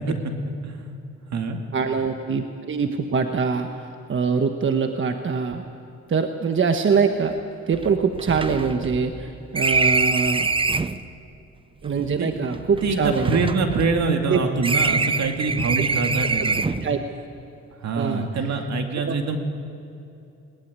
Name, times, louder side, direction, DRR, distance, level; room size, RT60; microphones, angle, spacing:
voice 1, 0.4-0.9 1.3-1.6 12.2-12.3 12.8-16.8 17.8-19.4, right 4 dB, 65° right, 4 dB, 2.5 m, -24 dB
voice 2, 1.7-5.6 6.1-7.4 7.7-10.5 11.8-13.4 14.3-14.4 16.8-17.0 18.0-18.3 19.0-19.2, right 5 dB, 40° right, 6 dB, 1.3 m, -23 dB
sound 1, 6.9-7.0 7.2-7.3 7.7-11.0 11.9-14.3 14.6-16.9, right 4 dB, 15° right, 0.7 m, -25 dB
20.0 x 19.0 x 9.6 m, 2.7 s
cardioid pair, 90°, 30 cm